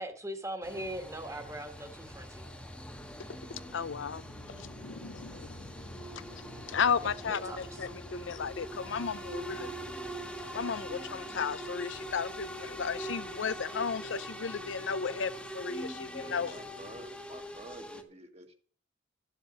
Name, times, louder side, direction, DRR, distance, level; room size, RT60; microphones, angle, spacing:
voice 1, 0.0-2.5 7.3-7.6, right 1 dB, 15° right, 1.6 m, -40 dB
sound 1, 0.6-18.0, equal, 5° left, 1.3 m, -43 dB
voice 2, 3.5-9.7 10.5-16.6, left 6 dB, 70° left, 0.5 m, -35 dB
voice 3, 16.2-18.5, right 1 dB, 30° right, 1.6 m, -50 dB
12.5 x 7.3 x 6.5 m
head